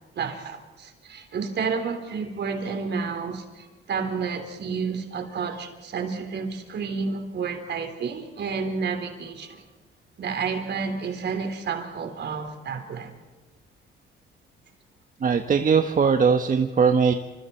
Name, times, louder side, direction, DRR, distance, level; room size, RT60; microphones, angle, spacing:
voice 1, 0.2-9.6 10.2-13.1, right 5 dB, 60° right, 6 dB, 3.8 m, -30 dB
voice 2, 15.2-17.1, right 6 dB, 45° right, 6 dB, 1.3 m, -20 dB
28.0 x 27.0 x 4.5 m, 1.2 s
cardioid pair, 90°, 20 cm